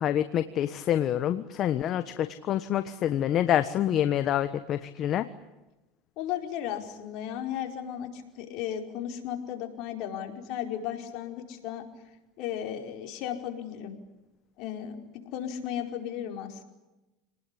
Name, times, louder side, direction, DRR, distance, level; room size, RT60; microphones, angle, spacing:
voice 1, 0.0-5.2, left 11 dB, 45° left, 11 dB, 1.2 m, -27 dB
voice 2, 6.2-11.8 12.4-13.9 14.6-16.6, left 10 dB, 60° left, 4 dB, 4.7 m, -35 dB
28.5 x 19.5 x 9.9 m, 1.0 s
supercardioid pair, 110°, 0 cm